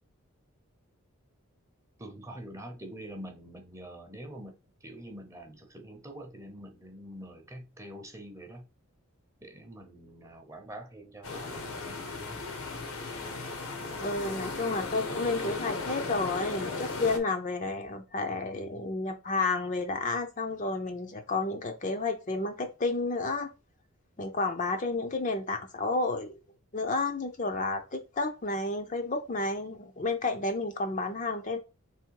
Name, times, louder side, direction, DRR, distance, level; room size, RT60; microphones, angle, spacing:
voice 1, 2.0-4.5 4.8-8.7 9.4-12.4 13.2-13.5, right 1 dB, 15° right, 0.8 m, -45 dB
sound 1, 11.2-17.2, left 3 dB, 85° left, 1.1 m, -36 dB
voice 2, 14.0-23.5 24.2-26.3 26.7-31.6, left 3 dB, 35° left, 0.6 m, -31 dB
3.5 x 3.2 x 4.6 m
head